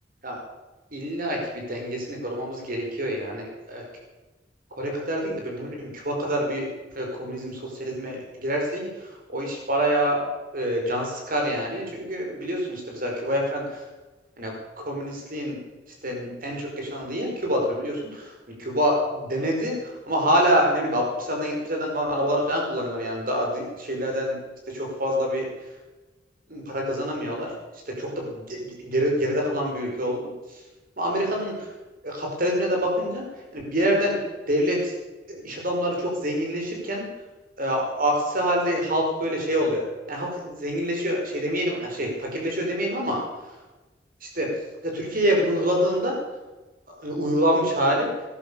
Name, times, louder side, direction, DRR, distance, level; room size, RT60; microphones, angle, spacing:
voice 1, 0.9-3.8 4.8-6.7 7.0-8.9 9.3-10.2 10.5-13.8 14.4-14.5 14.8-15.6 16.0-18.3 18.6-19.7 20.1-24.4 24.7-25.5 26.5-27.5 28.0-30.2 31.0-31.5 32.0-33.2 33.5-34.2 34.5-34.9 35.3-37.1 37.6-39.8 40.1-43.2 44.2-44.5 44.8-46.1 47.0-48.1, equal, 50° right, 0 dB, 5.0 m, -26 dB
14.0 x 11.5 x 6.9 m, 1.2 s
head